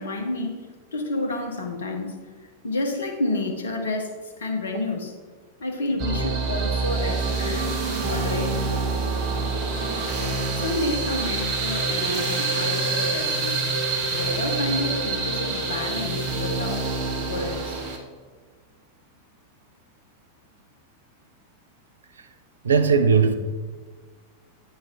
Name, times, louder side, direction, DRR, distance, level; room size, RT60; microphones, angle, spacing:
voice 1, 0.0-2.2 2.6-5.1 5.6-8.6 10.6-13.7 14.1-16.9 17.2-17.8, left 2 dB, 65° left, 1.3 m, -30 dB
sound 1, 6.0-18.0, right 3 dB, 35° right, 1.4 m, -26 dB
voice 2, 22.6-23.3, right 5 dB, 70° right, 0.6 m, -18 dB
9.3 x 4.6 x 4.4 m
figure-of-eight pair, 90°, 0 cm